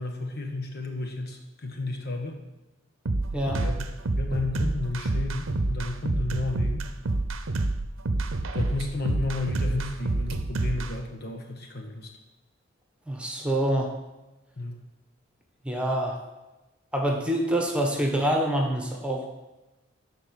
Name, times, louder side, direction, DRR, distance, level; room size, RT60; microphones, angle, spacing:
voice 1, 0.0-2.4 3.6-3.9 4.2-6.9 8.5-12.1 14.6-14.8, left 2 dB, 55° left, 3 dB, 1.4 m, -32 dB
sound 1, 3.1-10.9, right 2 dB, 85° right, 0.8 m, -28 dB
voice 2, 13.1-13.9 15.6-16.2 16.9-19.3, right 1 dB, 5° right, 1 dB, 1.4 m, -26 dB
12.5 x 4.4 x 6.6 m, 1.1 s
head